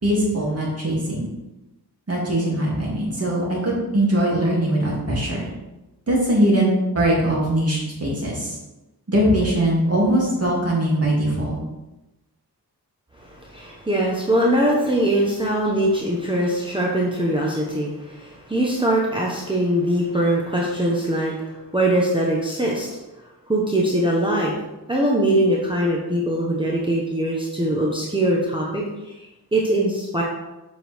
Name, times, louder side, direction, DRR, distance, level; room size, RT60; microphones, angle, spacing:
voice 1, 0.0-1.3 2.1-5.5 6.1-8.5 9.1-11.6, right 1 dB, 35° right, -4 dB, 2.7 m, -21 dB
voice 2, 13.2-21.4 21.7-22.9 23.5-24.5 24.9-29.1 29.5-30.2, right 1 dB, 10° right, -3 dB, 1.0 m, -22 dB
7.6 x 6.1 x 3.5 m, 1.0 s
wide cardioid pair, 125°, 40 cm